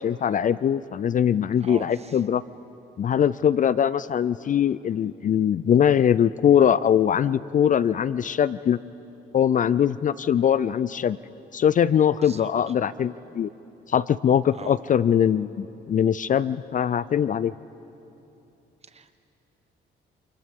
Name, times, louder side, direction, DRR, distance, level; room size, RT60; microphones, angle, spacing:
voice 1, 0.0-2.4 3.0-8.8 9.3-11.2 11.5-13.5 13.9-17.5, left 9 dB, 40° left, 17 dB, 0.4 m, -22 dB
voice 2, 1.6-2.2 12.2-12.5 14.5-14.8 18.9-19.2, right 5 dB, 30° right, 10 dB, 1.1 m, -41 dB
29.0 x 27.5 x 3.7 m, 2.9 s
cardioid pair, 90°, 20 cm